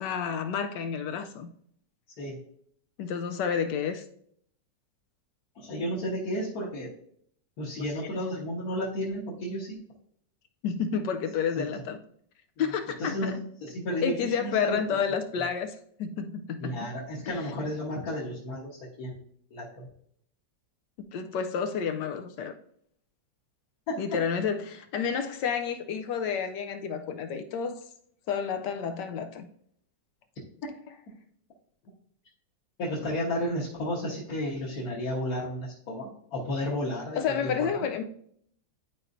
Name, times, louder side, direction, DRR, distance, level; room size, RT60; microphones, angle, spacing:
voice 1, 0.0-1.5 3.0-4.0 10.6-12.0 12.6-13.4 14.0-16.9 17.3-17.4 21.1-22.6 24.0-27.8 28.3-29.5 37.1-38.0, left 7 dB, 75° left, 1.2 m, -30 dB
voice 2, 5.6-6.9 7.6-9.8 11.6-11.8 13.0-14.8 16.6-19.2 19.5-19.9 23.9-24.0 32.8-37.9, equal, 55° left, 1.7 m, -33 dB
11.0 x 4.3 x 2.6 m
omnidirectional pair, 2.0 m